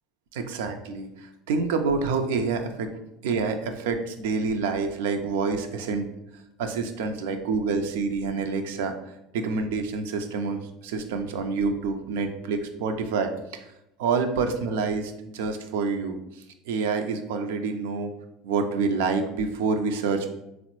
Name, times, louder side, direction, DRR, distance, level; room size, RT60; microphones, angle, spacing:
voice 1, 0.3-2.9 3.2-6.1 6.6-13.6 14.0-18.1 18.4-20.3, right 4 dB, 75° right, 7 dB, 0.3 m, -27 dB
3.5 x 2.0 x 2.9 m, 0.86 s
hypercardioid pair, 80°, 0 cm